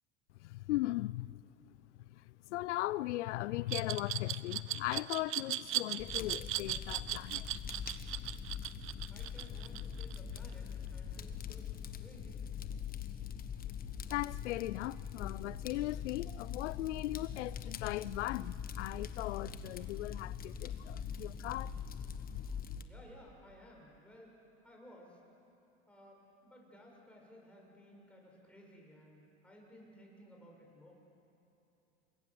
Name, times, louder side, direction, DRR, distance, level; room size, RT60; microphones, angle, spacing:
voice 1, 0.4-1.4 2.1-7.6 14.1-21.7, left 17 dB, 80° left, 0.5 m, -38 dB
Glass, 3.7-10.5, right 14 dB, 40° right, 0.8 m, -37 dB
Fire, 6.0-22.8, left 8 dB, 25° left, 1.2 m, -43 dB
voice 2, 9.1-10.7 10.9-11.7 12.0-12.3 22.8-24.3 24.6-25.2 25.9-30.9, equal, 5° left, 7.2 m, -57 dB
27.5 x 21.0 x 7.8 m
hypercardioid pair, 110°, 35 cm